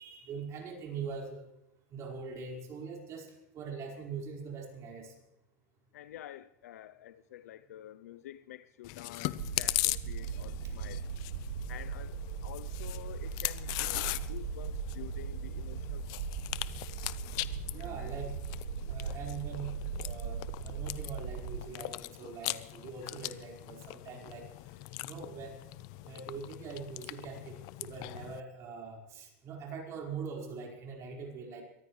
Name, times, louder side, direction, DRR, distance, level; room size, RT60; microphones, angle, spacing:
voice 1, 0.0-1.5 1.9-5.1 17.7-18.3 18.9-24.5 25.0-25.6 26.0-31.6, right 5 dB, 35° right, 4.8 m, -42 dB
voice 2, 5.9-11.0 11.7-16.3 17.8-18.2, left 12 dB, 85° left, 0.6 m, -49 dB
Chewing mastication, 8.8-28.4, left 19 dB, 50° left, 0.6 m, -40 dB
sound 1, 9.4-21.6, right 6 dB, 65° right, 1.1 m, -39 dB
23.0 x 15.0 x 3.2 m
supercardioid pair, 130°, 8 cm